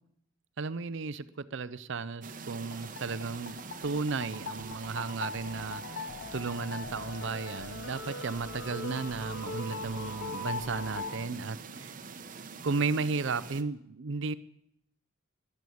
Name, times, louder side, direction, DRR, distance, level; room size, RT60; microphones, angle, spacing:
voice 1, 0.6-11.9 12.6-14.3, right 4 dB, 65° right, 15 dB, 0.6 m, -34 dB
sound 1, 2.2-13.6, right 5 dB, 40° right, 0.9 m, -45 dB
sound 2, 2.6-11.2, left 3 dB, 55° left, 1.2 m, -41 dB
12.5 x 11.0 x 8.5 m, 0.77 s
head